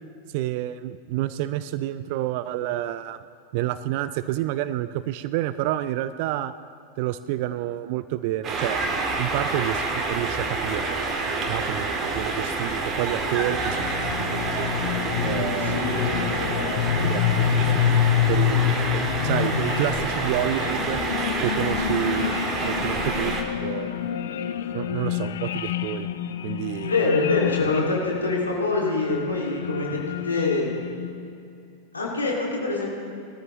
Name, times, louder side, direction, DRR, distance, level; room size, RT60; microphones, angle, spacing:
voice 1, 0.3-3.2 3.5-6.5 7.0-11.0 11.5-14.7 15.2-15.8 17.0-21.0 21.4-22.4 22.6-23.3 23.6-24.0 24.7-26.1 26.4-27.0, right 14 dB, 45° right, 14 dB, 0.4 m, -29 dB
sound 1, 8.4-23.4, right 3 dB, 30° right, 1.9 m, -28 dB
sound 2, 12.9-31.3, left 10 dB, 60° left, 0.5 m, -28 dB
voice 2, 15.6-16.8 26.8-30.7 31.9-32.9, left 3 dB, 75° left, -2 dB, 2.4 m, -25 dB
20.5 x 13.5 x 3.1 m, 2.5 s
figure-of-eight pair, 90°, 0 cm